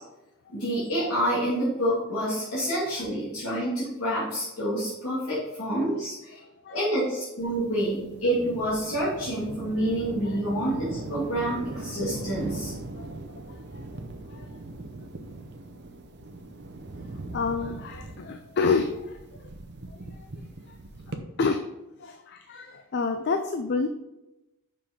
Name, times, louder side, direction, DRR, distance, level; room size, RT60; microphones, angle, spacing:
voice 1, 0.5-6.4 6.7-12.7, right 1 dB, 70° left, -9 dB, 2.3 m, -28 dB
sound 1, 7.4-21.2, right 2 dB, 50° right, 0.7 m, -40 dB
voice 2, 17.3-19.2 20.1-20.3 21.1-21.6 22.0-23.9, left 4 dB, 50° left, 7 dB, 0.4 m, -28 dB
5.6 x 5.1 x 5.0 m, 0.96 s
head